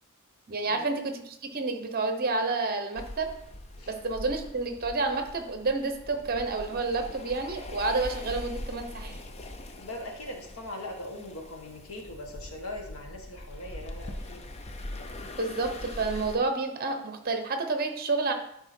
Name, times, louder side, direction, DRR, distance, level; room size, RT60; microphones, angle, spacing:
voice 1, 0.5-1.2 1.5-3.3 3.9-9.2 15.4-18.3, right 3 dB, 45° right, 6 dB, 1.0 m, -29 dB
sound 1, 3.0-16.4, left 1 dB, 30° left, 0.6 m, -42 dB
voice 2, 9.8-14.5, left 1 dB, 75° left, 2 dB, 1.6 m, -41 dB
10.5 x 4.5 x 4.4 m, 0.77 s
head